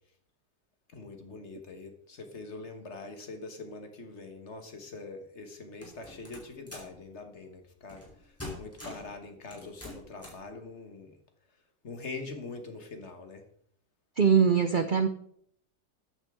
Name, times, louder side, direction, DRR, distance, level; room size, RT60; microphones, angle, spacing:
voice 1, 0.9-11.2 11.8-13.4, left 3 dB, 45° left, 5 dB, 1.6 m, -43 dB
sound 1, 5.8-7.0 7.9-8.1 8.4-9.1 9.5-10.5, left 1 dB, 10° left, 3.3 m, -44 dB
voice 2, 14.2-15.1, right 6 dB, 75° right, 9 dB, 0.4 m, -22 dB
13.0 x 9.0 x 3.7 m, 0.67 s
omnidirectional pair, 1.7 m